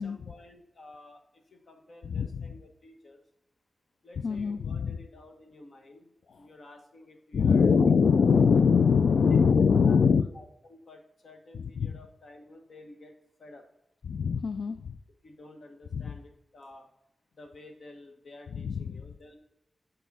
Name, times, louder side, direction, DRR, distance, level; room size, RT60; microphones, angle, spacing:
voice 1, 0.0-3.2 4.0-7.7 9.3-9.4 9.8-10.0 10.3-13.6 15.2-16.9 17.3-19.4, left 2 dB, 65° left, 4 dB, 1.3 m, -51 dB
voice 2, 2.0-2.4 4.2-5.0 7.3-10.2 11.8-11.9 14.1-15.0 16.0-16.1 18.5-19.0, left 6 dB, 85° left, 10 dB, 0.3 m, -23 dB
8.2 x 5.5 x 4.2 m, 0.82 s
wide cardioid pair, 115°, 0 cm